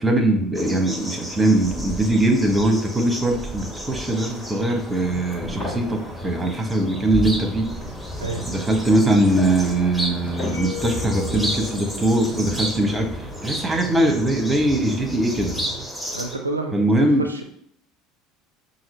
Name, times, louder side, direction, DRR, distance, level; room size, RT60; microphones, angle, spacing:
voice 1, 0.0-7.7 8.5-13.1 13.4-15.6 16.7-17.2, right 1 dB, 15° right, 3 dB, 0.9 m, -21 dB
sound 1, 0.5-16.4, equal, 5° left, 1.1 m, -34 dB
sound 2, 4.8-15.9, equal, 30° left, 1.4 m, -34 dB
voice 2, 8.2-8.5 16.1-17.4, right 3 dB, 85° right, 5 dB, 0.4 m, -29 dB
sound 3, 10.5-13.4, left 13 dB, 65° left, 1.0 m, -38 dB
5.6 x 2.6 x 3.2 m, 0.66 s
figure-of-eight pair, 65°, 0 cm